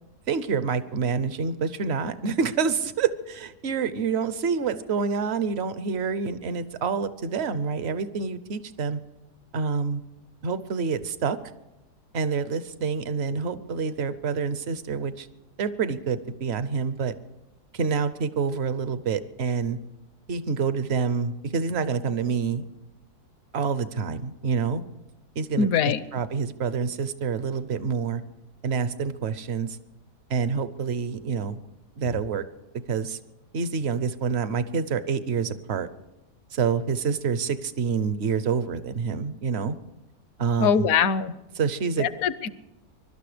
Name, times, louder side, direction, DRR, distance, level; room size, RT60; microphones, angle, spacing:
voice 1, 0.3-9.0 9.5-10.0 10.4-11.4 12.1-15.3 15.6-17.1 17.7-19.8 20.3-22.6 23.5-24.8 25.4-28.2 28.6-29.8 30.3-31.6 32.0-32.4 32.9-33.2 33.5-35.9 36.5-39.8 40.4-40.9 41.6-42.1, right 5 dB, 50° right, 13 dB, 0.9 m, -27 dB
voice 2, 25.6-26.0 40.6-41.3 42.0-42.5, left 7 dB, 65° left, 15 dB, 1.0 m, -22 dB
22.5 x 12.5 x 5.0 m, 0.98 s
omnidirectional pair, 1.7 m